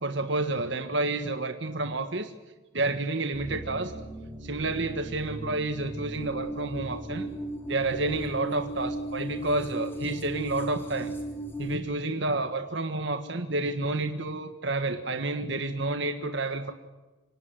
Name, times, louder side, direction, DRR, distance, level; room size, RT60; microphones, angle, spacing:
voice 1, 0.0-2.3 2.7-3.9 4.4-7.3 7.7-11.1 11.6-16.7, right 2 dB, 60° right, 7 dB, 1.5 m, -30 dB
sound 1, 3.3-11.8, right 1 dB, 10° left, 3.7 m, -36 dB
25.5 x 18.0 x 9.9 m, 1.2 s
head